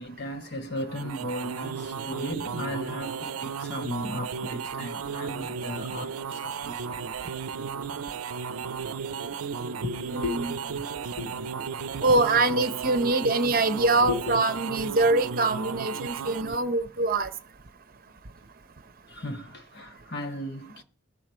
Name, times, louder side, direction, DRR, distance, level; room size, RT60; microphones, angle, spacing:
voice 1, 0.0-7.4 8.3-8.4 9.8-11.3 14.1-14.4 19.1-20.8, left 1 dB, 50° left, 1.3 m, -36 dB
sound 1, 0.8-16.6, right 6 dB, 85° right, 0.6 m, -34 dB
voice 2, 10.1-10.5 12.0-17.3, right 2 dB, 40° right, 0.9 m, -24 dB
19.5 x 6.7 x 4.4 m
head